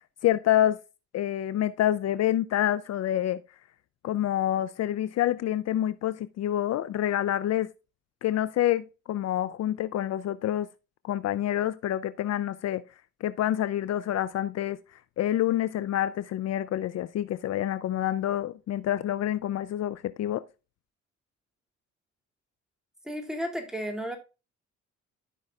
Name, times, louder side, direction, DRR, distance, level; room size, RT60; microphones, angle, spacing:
voice 1, 0.2-0.8 1.1-3.4 4.0-7.7 8.2-10.7 11.0-12.8 13.2-14.8 15.2-20.4, left 12 dB, 60° left, 0.5 m, -27 dB
voice 2, 23.0-24.2, equal, ahead, 2.4 m, -33 dB
13.5 x 5.4 x 2.4 m
cardioid pair, 90°, 30 cm